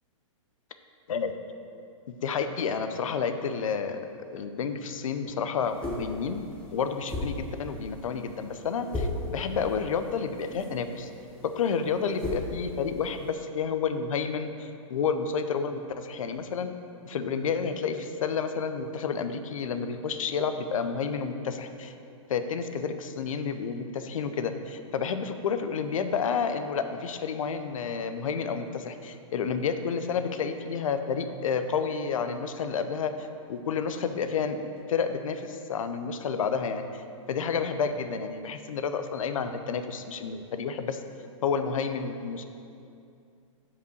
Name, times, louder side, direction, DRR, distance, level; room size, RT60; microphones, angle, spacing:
voice 1, 2.1-4.0 4.3-6.4 6.7-11.1 11.6-16.7 17.1-21.9 22.3-37.0 37.3-41.0 41.4-42.5, left 6 dB, 75° left, 8 dB, 0.6 m, -30 dB
sound 1, 5.6-13.3, left 1 dB, 5° left, 0.8 m, -37 dB
5.4 x 5.0 x 6.4 m, 2.5 s
hypercardioid pair, 155°, 17 cm